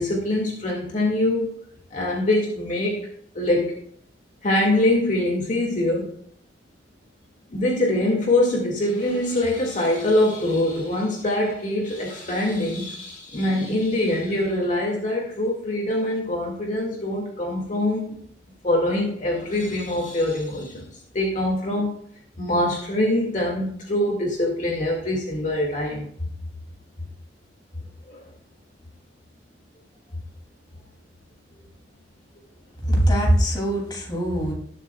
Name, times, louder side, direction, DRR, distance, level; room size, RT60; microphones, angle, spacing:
voice 1, 0.0-1.5 1.9-3.1 3.3-3.8 4.4-6.1 7.5-18.2 18.6-20.9 21.1-22.0 22.4-26.1 28.1-28.2, left 1 dB, 45° left, -1 dB, 2.1 m, -24 dB
voice 2, 32.9-34.5, right 1 dB, 25° left, -1 dB, 2.7 m, -21 dB
19.0 x 7.6 x 2.3 m, 0.63 s
head